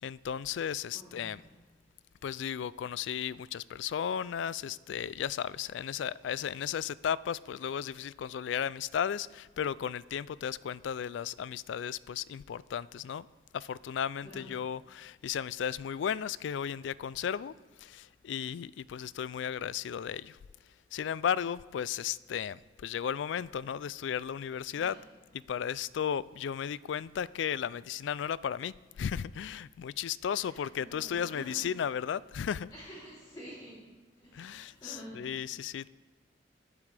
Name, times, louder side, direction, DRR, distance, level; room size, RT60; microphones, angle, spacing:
voice 1, 0.0-1.4 2.2-13.3 13.5-17.5 17.8-20.4 20.9-25.0 25.3-32.7 34.3-35.9, left 8 dB, 75° left, 0.3 m, -35 dB
voice 2, 0.9-1.5 3.7-3.8 14.2-14.7 24.7-25.3 25.7-25.8 27.1-27.2 27.5-27.6 30.4-31.7 32.2-32.3 32.7-33.8 34.1-35.3, equal, 20° left, 3.2 m, -50 dB
21.0 x 8.6 x 3.4 m
head